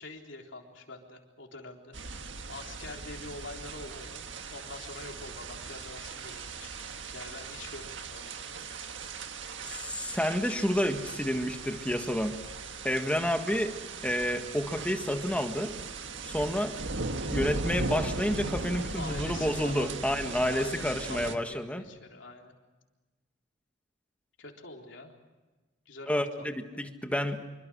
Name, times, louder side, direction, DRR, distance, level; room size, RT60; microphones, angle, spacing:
voice 1, 0.0-1.9 2.5-6.7 7.1-8.6 18.9-22.5 24.4-25.1 25.9-26.8, left 3 dB, 65° left, 2 dB, 3.9 m, -45 dB
sound 1, 1.9-21.4, right 3 dB, 70° right, 1.7 m, -38 dB
voice 2, 9.6-12.4 12.8-13.7 14.0-15.7 16.2-16.7 17.3-21.8 26.1-27.4, equal, 5° left, 6 dB, 1.7 m, -29 dB
26.5 x 24.0 x 6.3 m, 1.2 s
head